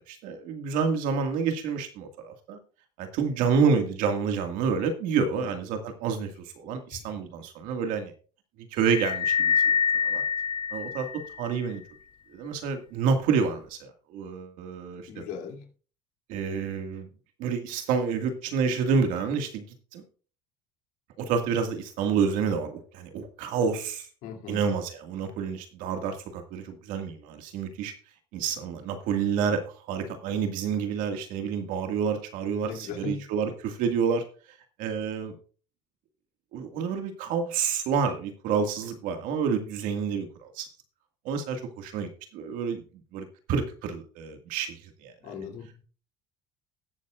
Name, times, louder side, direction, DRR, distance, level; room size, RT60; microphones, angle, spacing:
voice 1, 0.1-2.6 3.0-8.1 8.6-9.5 10.0-10.2 10.7-11.8 12.3-15.2 16.3-17.1 17.4-19.7 19.9-20.0 21.2-24.1 24.5-27.9 28.3-34.2 34.8-35.3 36.5-40.7 41.3-42.8 43.1-45.1, right 6 dB, 70° right, 6 dB, 2.0 m, -28 dB
voice 2, 5.1-5.5 6.9-7.2 15.1-15.7 24.2-24.6 32.6-33.2 45.2-45.8, left 7 dB, 70° left, 1 dB, 2.9 m, -38 dB
sound 1, 8.9-11.5, left 7 dB, 35° left, 0.5 m, -26 dB
20.5 x 7.4 x 2.5 m, 0.40 s
supercardioid pair, 110°, 14 cm